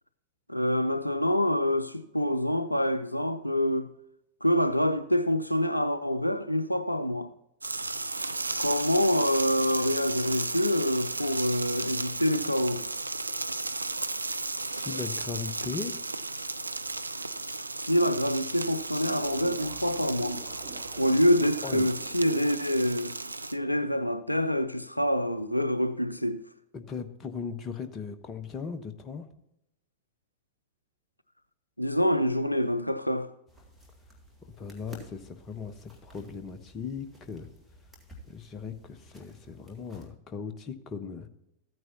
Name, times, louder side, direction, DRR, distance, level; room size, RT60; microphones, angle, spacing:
voice 1, 0.5-3.9 4.4-7.3 8.6-12.9 17.8-20.4 21.0-23.2 23.4-26.4 31.8-33.3, equal, 85° left, 0.4 m, -26 dB
sound 1, 7.6-23.6, right 2 dB, 80° right, 0.3 m, -34 dB
voice 2, 14.7-16.0 21.6-21.9 26.7-29.3 34.4-37.5 38.3-41.3, left 6 dB, 25° left, 1.0 m, -38 dB
sound 2, 19.1-22.2, right 3 dB, 40° right, 3.6 m, -47 dB
sound 3, 33.5-40.1, left 1 dB, 5° left, 2.3 m, -53 dB
14.0 x 9.2 x 2.8 m
figure-of-eight pair, 90°, 0 cm